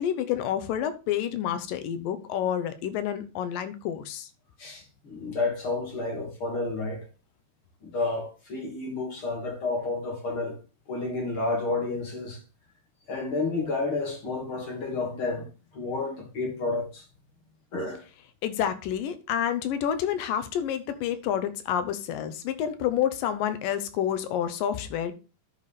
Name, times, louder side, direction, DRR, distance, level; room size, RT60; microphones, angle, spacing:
voice 1, 0.0-4.3 18.4-25.1, left 9 dB, 90° left, 2.7 m, -29 dB
voice 2, 4.6-7.0 7.8-10.6 10.9-12.4 13.1-17.1 17.7-18.0, left 3 dB, 40° left, 2.9 m, -30 dB
11.0 x 5.0 x 4.2 m
omnidirectional pair, 3.8 m